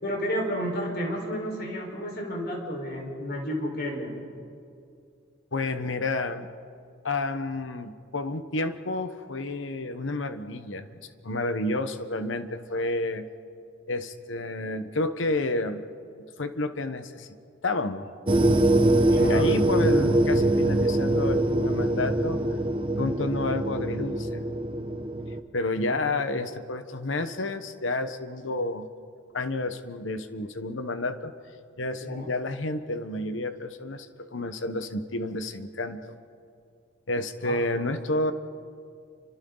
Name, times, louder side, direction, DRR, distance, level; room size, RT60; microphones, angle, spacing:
voice 1, 0.0-4.2 19.1-19.5 25.8-26.0 32.0-32.3 37.4-37.7, equal, 55° left, 0 dB, 4.8 m, -32 dB
voice 2, 5.5-6.5 7.0-13.3 13.9-15.8 16.2-17.3 17.6-18.1 19.2-22.6 23.0-24.4 25.5-28.9 29.3-31.3 31.8-36.2 37.1-38.3, left 2 dB, 75° left, 10 dB, 1.1 m, -30 dB
sound 1, 18.3-25.4, right 1 dB, 30° right, 0.9 m, -23 dB
29.5 x 25.0 x 4.0 m, 2.4 s
head